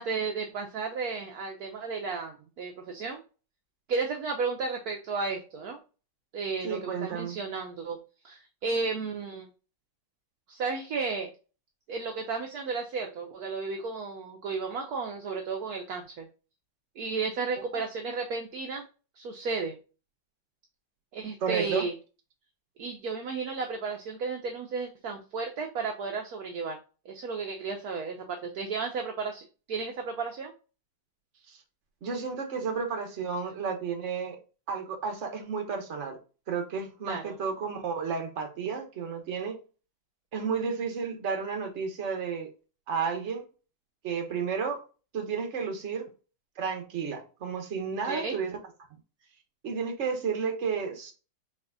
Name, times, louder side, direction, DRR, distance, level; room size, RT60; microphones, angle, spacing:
voice 1, 0.0-3.2 3.9-5.8 6.3-8.0 8.2-9.5 10.5-11.3 11.9-16.3 17.0-18.8 19.2-19.8 21.1-21.9 22.8-26.8 27.1-30.5 37.0-37.3 48.0-48.4, right 4 dB, 65° right, 1.1 m, -33 dB
voice 2, 6.6-7.4 17.7-17.8 21.4-21.9 31.5-31.6 32.0-34.4 34.7-36.2 36.5-39.6 40.3-42.5 42.9-43.4 44.0-44.8 45.1-46.0 46.6-48.6 49.6-51.1, right 5 dB, 45° right, 1.2 m, -32 dB
4.9 x 3.9 x 2.2 m
omnidirectional pair, 1.9 m